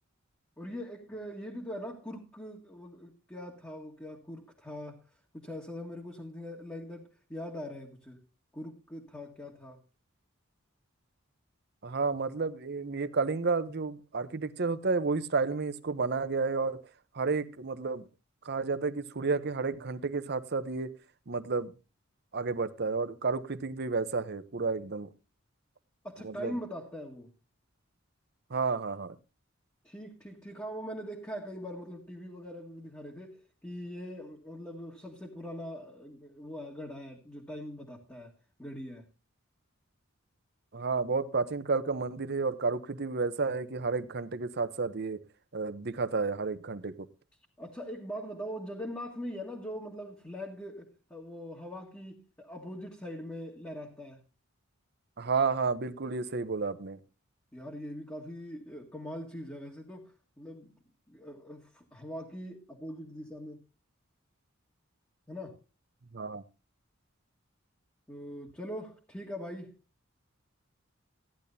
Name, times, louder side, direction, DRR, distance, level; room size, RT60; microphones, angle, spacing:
voice 1, 0.6-5.0 5.3-8.2 8.5-9.8 26.0-27.3 29.8-38.3 38.6-39.1 47.6-54.2 57.5-60.7 61.1-63.6 65.3-65.6 68.1-69.7, equal, 10° left, 1.6 m, -42 dB
voice 2, 11.8-16.8 17.1-18.1 18.4-20.9 21.3-21.7 22.3-25.1 26.2-26.5 28.5-29.1 40.7-45.2 45.5-46.9 55.2-57.0 66.1-66.4, right 4 dB, 55° right, 0.8 m, -31 dB
15.0 x 10.5 x 2.7 m
head